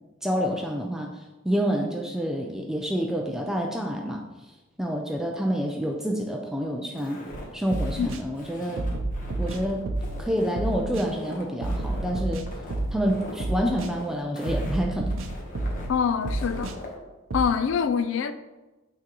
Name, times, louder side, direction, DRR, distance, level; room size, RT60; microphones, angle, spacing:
voice 1, 0.2-4.2 4.8-7.2 7.5-8.9 9.4-9.9 10.2-12.5 12.9-15.2, equal, 5° right, 0.4 m, -28 dB
Walk footsteps, 7.0-16.9, left 1 dB, 40° left, 1.0 m, -42 dB
sound 1, 7.3-7.4 7.7-8.2 8.8-10.2 10.6-11.1 11.6-13.1 13.4-13.9 14.5-15.9 16.2-16.8 17.3-17.4, right 2 dB, 90° right, 0.6 m, -30 dB
voice 2, 15.9-16.7 17.3-18.3, left 6 dB, 65° left, 0.3 m, -25 dB
8.8 x 3.7 x 3.0 m
head